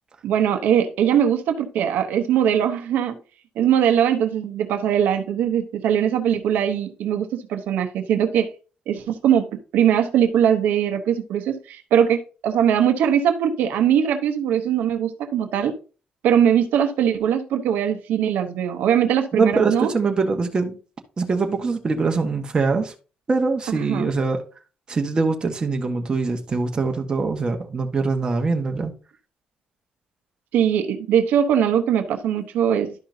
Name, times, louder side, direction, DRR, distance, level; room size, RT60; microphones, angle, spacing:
voice 1, 0.2-3.2 3.6-8.5 8.9-15.8 16.2-19.9 23.9-24.1 30.5-32.9, right 9 dB, 85° right, 0.9 m, -21 dB
voice 2, 19.3-20.8 21.2-22.9 23.3-24.4 24.9-28.9, right 4 dB, 30° right, 1.3 m, -23 dB
12.0 x 5.6 x 2.7 m
cardioid pair, 115°, 3 cm